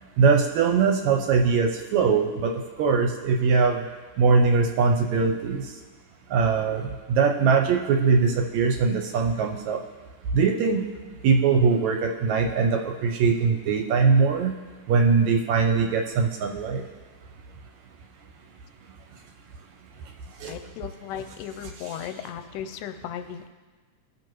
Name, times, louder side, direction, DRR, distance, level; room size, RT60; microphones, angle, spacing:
voice 1, 0.2-3.8 4.2-5.7 6.3-9.8 10.3-10.9 11.2-14.6 14.9-16.8 20.4-20.6 21.9-22.0, right 5 dB, 75° right, 3 dB, 1.8 m, -21 dB
voice 2, 20.5-23.5, left 9 dB, 90° left, 8 dB, 2.2 m, -36 dB
17.5 x 6.5 x 3.0 m, 1.4 s
omnidirectional pair, 3.7 m